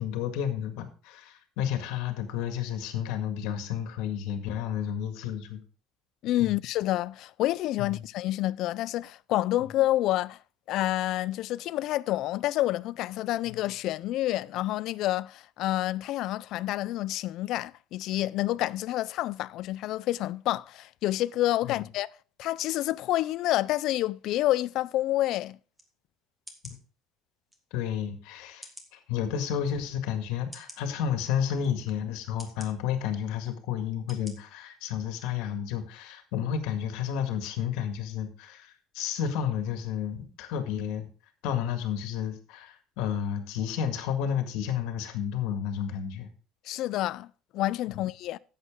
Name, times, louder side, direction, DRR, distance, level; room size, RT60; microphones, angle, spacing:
voice 1, 0.0-5.6 6.4-6.6 7.8-8.0 9.6-9.7 13.5-13.6 21.6-21.8 27.7-41.1 41.4-46.3 47.9-48.0, left 8 dB, 75° left, 1.8 m, -31 dB
voice 2, 6.2-10.4 10.7-22.1 22.4-25.6 46.7-47.3 47.5-48.4, left 15 dB, 55° left, 0.4 m, -28 dB
sound 1, 25.7-25.9 26.5-26.8 27.5-27.6 28.6-28.9 29.6-29.7 30.5-30.8 31.6-31.7 32.4-32.7 33.4-33.5 34.1-34.3 34.8-34.9, equal, 5° right, 1.6 m, -47 dB
11.0 x 8.1 x 3.7 m
cardioid pair, 145°, 0 cm